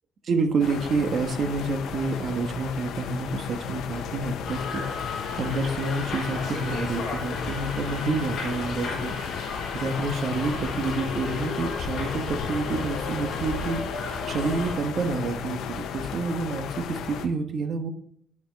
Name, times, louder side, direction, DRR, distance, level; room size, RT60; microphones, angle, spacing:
voice 1, 0.2-9.5 9.7-17.9, right 3 dB, 50° right, 6 dB, 1.3 m, -29 dB
sound 1, 0.6-17.3, left 8 dB, 85° left, 0.9 m, -35 dB
Subway metro underground, 4.4-14.8, left 4 dB, 60° left, 3.4 m, -34 dB
9.6 x 6.5 x 4.1 m, 0.67 s
cardioid pair, 145°, 0 cm